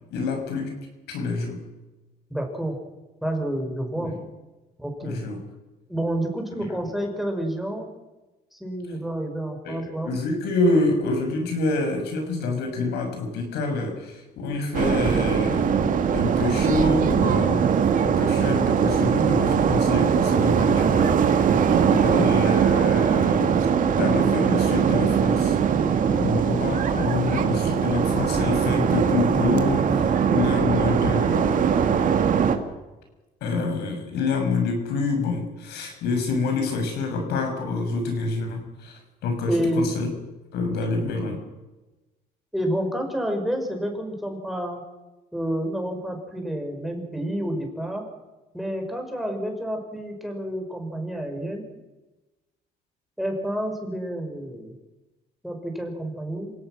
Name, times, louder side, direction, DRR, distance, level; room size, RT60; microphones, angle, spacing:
voice 1, 0.1-0.7 1.1-1.6 3.9-4.2 5.0-5.4 9.6-15.8 16.1-21.4 21.7-23.6 24.0-25.6 26.2-31.7 33.4-40.1 40.5-41.4, left 3 dB, 80° left, 5 dB, 6.3 m, -27 dB
voice 2, 2.3-2.8 3.2-4.1 4.8-5.2 5.9-7.9 8.5-10.1 39.5-39.9 40.8-40.9 42.5-44.8 45.3-48.0 48.5-51.7 53.2-54.7 55.4-56.5, equal, ahead, 3 dB, 5.3 m, -29 dB
sound 1, 14.7-32.6, right 7 dB, 50° right, 2.3 m, -21 dB
27.0 x 17.5 x 6.3 m, 1.1 s
cardioid pair, 110°, 17 cm